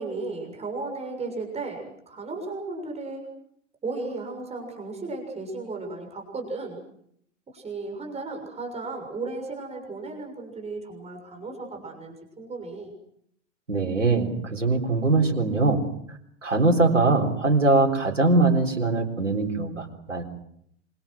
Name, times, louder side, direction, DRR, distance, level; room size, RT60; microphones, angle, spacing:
voice 1, 0.0-3.2 3.8-6.8 7.5-12.9, right 3 dB, 15° right, 3 dB, 6.7 m, -35 dB
voice 2, 13.7-15.9 16.4-20.2, right 3 dB, 80° right, 2 dB, 3.9 m, -22 dB
27.0 x 25.0 x 6.3 m, 0.69 s
figure-of-eight pair, 95°, 37 cm